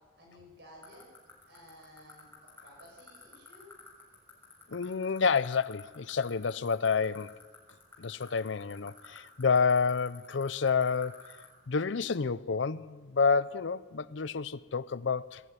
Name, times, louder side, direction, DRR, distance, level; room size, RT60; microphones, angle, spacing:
voice 1, 0.2-1.1 1.5-3.7, equal, 55° right, 7.9 m, -54 dB
sound 1, 0.8-11.5, left 3 dB, 10° left, 6.4 m, -50 dB
voice 2, 4.7-7.3 8.0-11.2 11.7-15.4, left 5 dB, 70° left, 0.6 m, -29 dB
20.5 x 16.0 x 9.6 m
head